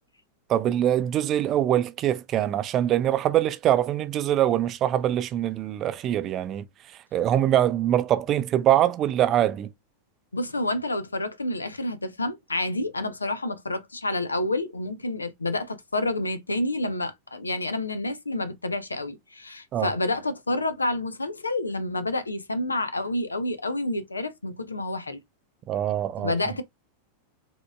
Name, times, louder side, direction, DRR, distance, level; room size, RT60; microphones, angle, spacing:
voice 1, 0.5-6.7 7.1-9.7 19.7-19.9 25.7-26.3, right 11 dB, 30° right, 0.6 m, -23 dB
voice 2, 10.3-25.2 26.2-26.6, left 2 dB, 80° left, 0.8 m, -29 dB
5.1 x 3.6 x 2.4 m
figure-of-eight pair, 90°, 0 cm